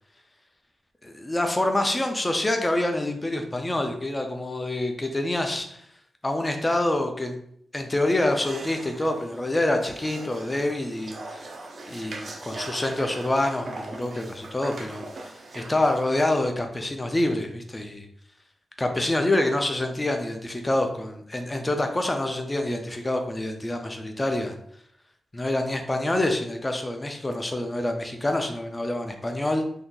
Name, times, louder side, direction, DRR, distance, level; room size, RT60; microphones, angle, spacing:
voice 1, 1.0-5.8 6.2-7.4 7.7-11.5 11.9-18.0 18.8-24.5 25.3-29.7, left 1 dB, 20° left, 4 dB, 0.5 m, -26 dB
sound 1, 8.1-16.5, right 2 dB, 55° right, 0.4 m, -41 dB
2.7 x 2.4 x 3.7 m, 0.68 s
wide cardioid pair, 120°, 0 cm